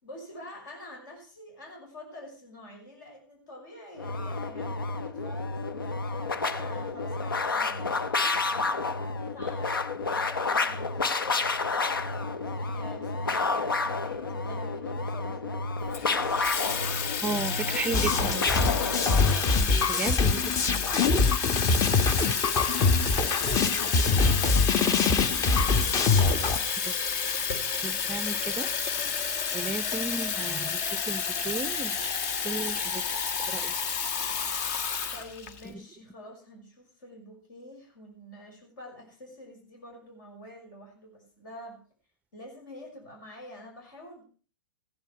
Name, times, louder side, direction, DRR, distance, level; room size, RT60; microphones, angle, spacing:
voice 1, 0.0-8.9 9.2-9.8 10.1-15.4 15.8-16.4 20.0-20.4 20.6-20.7 23.6-25.0 35.1-41.8 42.3-44.2, left 1 dB, 65° left, 0 dB, 6.1 m, -47 dB
sound 1, 4.0-19.6, left 3 dB, 80° left, 0.9 m, -30 dB
Water tap faucet / Fill (with liquid), 15.9-35.7, left 6 dB, 45° left, 1.3 m, -30 dB
voice 2, 17.2-18.5 19.9-20.5 26.9-27.0 27.8-28.7 29.5-32.1 32.4-33.0 33.5-33.7 35.7-35.8, right 3 dB, 10° right, 17 dB, 0.5 m, -34 dB
sound 2, 17.9-26.6, left 4 dB, 30° left, 1.2 m, -24 dB
15.5 x 10.5 x 4.6 m, 0.39 s
figure-of-eight pair, 100°, 11 cm